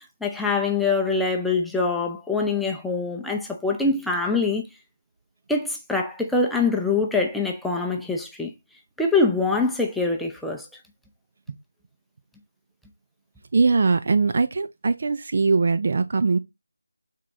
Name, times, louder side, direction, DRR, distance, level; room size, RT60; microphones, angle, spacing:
voice 1, 0.2-4.6 5.5-8.5 9.0-10.7, left 3 dB, ahead, 0.7 m, -24 dB
voice 2, 13.5-16.4, right 4 dB, 40° right, 0.5 m, -21 dB
8.2 x 4.6 x 3.8 m
figure-of-eight pair, 160°, 0 cm